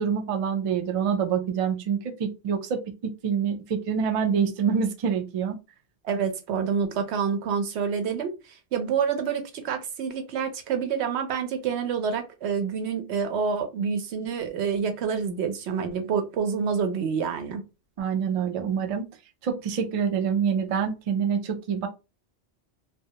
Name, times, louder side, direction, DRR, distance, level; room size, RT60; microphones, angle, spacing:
voice 1, 0.0-2.8 3.2-5.6 18.0-19.1 19.4-21.9, right 7 dB, 60° right, 0.3 m, -26 dB
voice 2, 6.0-17.6, right 6 dB, 85° right, 0.9 m, -27 dB
2.2 x 2.0 x 2.7 m
omnidirectional pair, 1.1 m